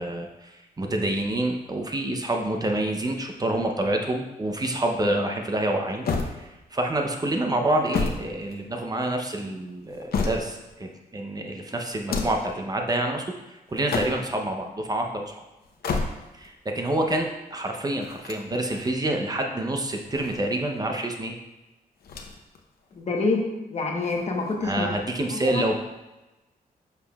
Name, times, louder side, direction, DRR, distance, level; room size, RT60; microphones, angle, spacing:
voice 1, 0.0-6.1 6.4-15.4 16.3-21.3 24.6-25.7, right 1 dB, 25° right, 2 dB, 0.6 m, -27 dB
sound 1, 6.0-6.9 7.6-9.0 9.7-10.7 11.9-12.6 13.7-14.4 15.6-16.5 18.0-19.0 19.9-20.8 22.0-22.6 22.9-23.0 24.0-24.8, left 4 dB, 90° left, 0.8 m, -31 dB
voice 2, 23.0-23.4 23.7-24.9 25.3-25.6, left 3 dB, 45° left, 1 dB, 1.1 m, -27 dB
7.3 x 6.6 x 2.3 m, 1.0 s
wide cardioid pair, 120°, 15 cm